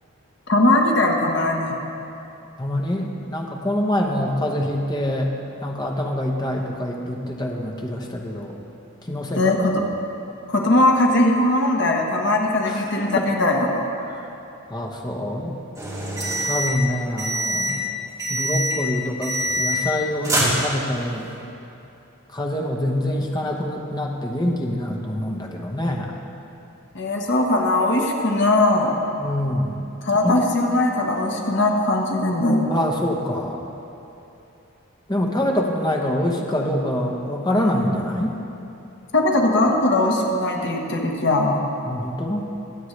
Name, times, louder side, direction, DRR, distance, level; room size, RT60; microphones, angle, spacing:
voice 1, 0.5-1.7 9.4-9.8 10.5-13.9 26.9-29.0 30.0-32.8 39.1-41.7, left 2 dB, 55° left, 1 dB, 1.1 m, -20 dB
voice 2, 2.6-8.6 9.0-9.7 12.7-12.8 13.2-13.3 14.1-14.3 14.7-15.6 16.4-17.9 18.3-21.3 22.3-26.2 29.2-29.8 30.2-30.4 32.7-33.6 35.1-38.4 41.8-42.5, left 1 dB, 20° left, 0 dB, 0.9 m, -25 dB
sound 1, 15.8-16.8 17.2-17.8 18.2-18.8 19.2-20.0 20.2-21.1, equal, 15° right, 2.4 m, -24 dB
23.0 x 7.9 x 3.2 m, 2.9 s
head